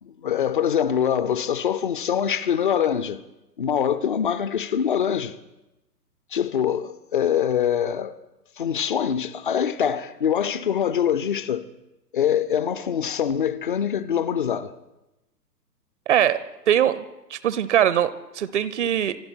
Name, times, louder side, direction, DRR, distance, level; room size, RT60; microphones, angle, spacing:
voice 1, 0.0-3.2 3.6-5.4 6.3-8.2 8.6-11.7 12.1-14.7, left 8 dB, 35° left, 0.5 m, -24 dB
voice 2, 16.1-17.0 17.3-19.2, right 10 dB, 45° right, 0.7 m, -22 dB
26.0 x 12.0 x 4.4 m
figure-of-eight pair, 120°, 48 cm